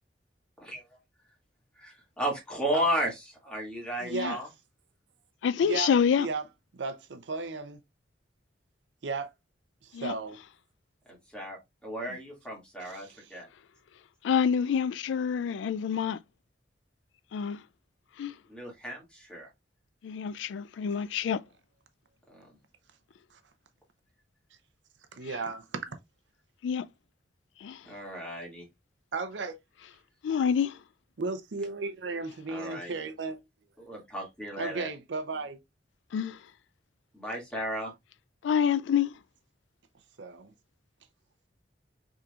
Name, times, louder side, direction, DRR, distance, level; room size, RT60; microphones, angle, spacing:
voice 1, 1.8-4.5 11.1-13.5 18.5-19.5 22.3-22.5 27.8-28.6 32.5-33.0 33.8-34.9 37.1-37.9, equal, 5° left, 2.1 m, -34 dB
voice 2, 4.0-4.4 5.6-5.9 6.2-6.5 6.7-7.8 9.0-9.3 9.8-10.4 12.8-13.3 23.3-23.4 25.1-26.0 29.1-29.5 31.2-33.4 34.6-35.6 40.2-40.5, right 3 dB, 85° right, 0.6 m, -35 dB
voice 3, 5.4-6.3 9.9-10.1 14.2-16.2 17.3-17.6 18.2-18.3 20.0-21.4 26.6-26.9 27.6-27.8 30.2-30.8 36.1-36.4 38.4-39.1, left 7 dB, 90° left, 0.3 m, -27 dB
5.7 x 3.7 x 2.4 m
head